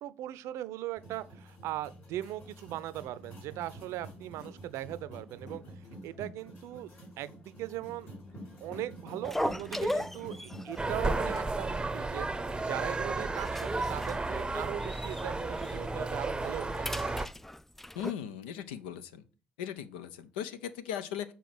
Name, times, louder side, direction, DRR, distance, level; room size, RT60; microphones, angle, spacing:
voice 1, 0.0-5.6 6.0-6.9 7.2-8.1 8.6-16.9, right 14 dB, 65° right, 0.5 m, -39 dB
sound 1, 1.0-11.5, equal, 40° left, 4.9 m, -48 dB
sound 2, 9.2-10.8 11.1-11.4 11.6-11.7 12.3-12.8 13.2-15.3 15.6-15.8 16.2-18.1, left 1 dB, 5° left, 0.3 m, -37 dB
sound 3, 10.8-17.3, right 2 dB, 15° right, 0.8 m, -33 dB
voice 2, 17.9-19.2 19.6-21.3, left 9 dB, 75° left, 0.7 m, -38 dB
7.0 x 4.5 x 6.1 m
hypercardioid pair, 50°, 5 cm